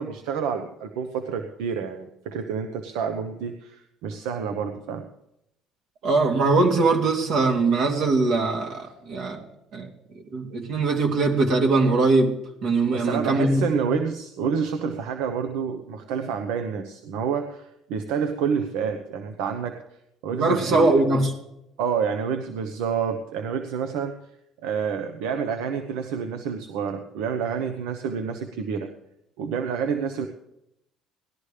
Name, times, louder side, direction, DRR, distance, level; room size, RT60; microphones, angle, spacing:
voice 1, 0.0-5.1 12.9-19.8 20.2-20.9 21.8-24.1 24.6-28.9 29.4-30.3, right 6 dB, 85° right, 7 dB, 1.0 m, -28 dB
voice 2, 6.0-9.4 9.7-9.9 10.3-12.3 12.6-13.9 20.3-21.3, right 3 dB, 70° right, 2 dB, 2.9 m, -21 dB
18.5 x 12.5 x 3.4 m, 0.82 s
cardioid pair, 105°, 0 cm